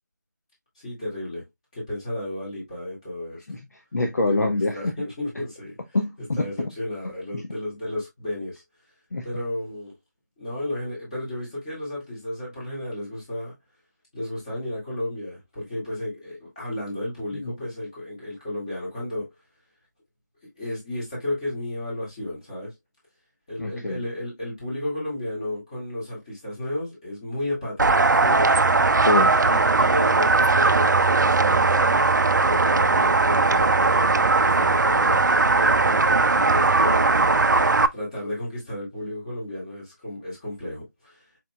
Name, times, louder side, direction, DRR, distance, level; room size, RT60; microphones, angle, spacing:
voice 1, 0.8-1.4 1.7-3.4 4.2-5.8 6.4-8.6 9.2-9.9 10.4-13.5 14.1-19.3 20.6-22.7 23.5-28.5 29.4-32.1 32.4-41.3, left 1 dB, 20° left, 2.0 m, -33 dB
voice 2, 3.9-4.8 5.9-6.7 9.1-9.3 17.3-17.5 23.6-24.0 28.9-29.4, left 2 dB, 60° left, 0.8 m, -25 dB
sound 1, 27.8-37.9, right 3 dB, 80° right, 0.4 m, -19 dB
4.4 x 3.9 x 2.2 m
figure-of-eight pair, 170°, 10 cm